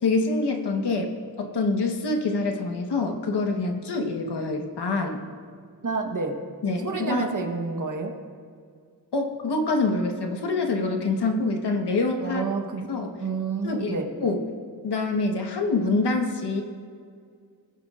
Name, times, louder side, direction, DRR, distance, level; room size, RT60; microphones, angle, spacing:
voice 1, 0.0-5.2 6.6-7.4 9.1-12.4 12.9-13.2 13.6-14.4 14.8-16.6, left 3 dB, 80° left, 3 dB, 1.4 m, -26 dB
voice 2, 5.8-6.3 6.8-8.1 12.2-12.9 13.2-14.1, right 4 dB, 50° right, 4 dB, 1.2 m, -29 dB
20.0 x 10.5 x 2.5 m, 2.2 s
wide cardioid pair, 165°, 40 cm